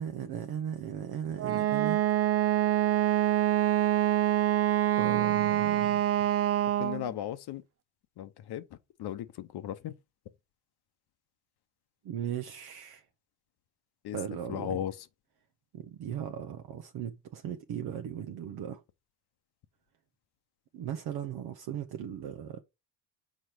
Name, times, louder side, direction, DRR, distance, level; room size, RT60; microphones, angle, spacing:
voice 1, 0.0-2.0 5.0-6.0 12.0-13.0 14.1-14.8 15.7-18.8 20.7-22.6, right 9 dB, 55° right, 0.9 m, -37 dB
Wind instrument woodwind instrument, 1.4-7.1, right 12 dB, 35° right, 0.4 m, -26 dB
voice 2, 6.8-7.6 8.2-8.6 9.0-9.9 14.0-14.2 14.5-14.9, left 11 dB, 55° left, 0.9 m, -36 dB
6.3 x 4.5 x 5.0 m
cardioid pair, 100°, 46 cm